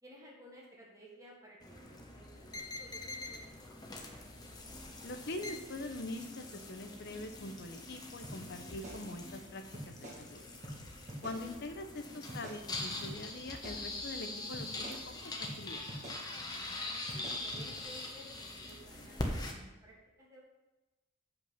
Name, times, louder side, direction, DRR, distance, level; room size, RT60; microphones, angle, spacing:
voice 1, 0.0-4.2 11.0-11.1 16.3-17.1 17.4-20.4, right 1 dB, 15° right, -4 dB, 1.6 m, -56 dB
sound 1, 1.6-19.5, left 2 dB, 20° left, 0.9 m, -43 dB
voice 2, 5.0-10.5 11.2-15.8, left 2 dB, 50° left, 7 dB, 0.8 m, -44 dB
sound 2, 8.2-8.4 8.7-9.4 9.7-10.2 10.6-10.8 11.1-11.4 12.3-13.2 13.5-14.2 14.5-15.0 15.4-15.6 15.9-16.2 17.1-17.7, right 1 dB, 35° right, 2.1 m, -46 dB
7.5 x 5.6 x 5.6 m, 1.1 s
head